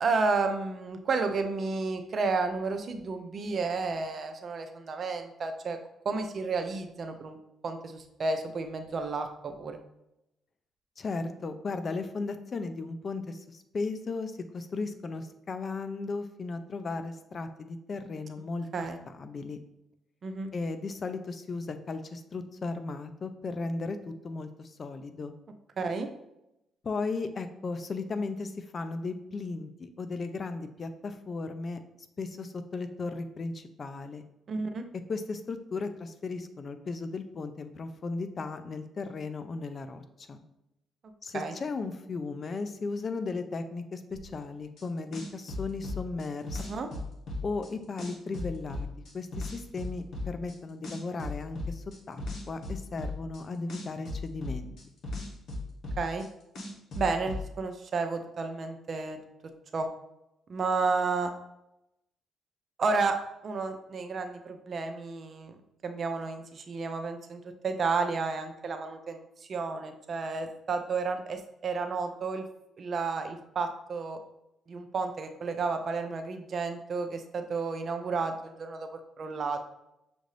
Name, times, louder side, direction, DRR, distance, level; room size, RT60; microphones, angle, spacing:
voice 1, 0.0-5.8 6.0-7.4 7.6-9.8 18.7-19.0 20.2-20.5 25.8-26.1 34.5-34.8 41.3-41.5 46.7-46.9 56.0-56.2 57.0-59.2 59.7-59.9 60.5-61.3 62.8-65.5 65.8-69.2 69.5-72.4 72.8-74.2 74.7-78.9 79.2-79.6, right 4 dB, 50° right, 6 dB, 0.5 m, -31 dB
voice 2, 11.0-18.7 19.1-19.6 20.5-25.3 26.8-31.8 32.2-34.2 35.1-40.4 41.2-46.8 47.4-48.9 49.1-54.7, left 3 dB, 45° left, 9 dB, 0.5 m, -36 dB
sound 1, 44.8-44.9 45.1-47.7 48.0-50.5 50.8-53.4 53.7-56.3 56.5-57.4, left 2 dB, 65° left, 1.1 m, -36 dB
6.4 x 2.5 x 3.2 m, 0.88 s
cardioid pair, 90°, 0 cm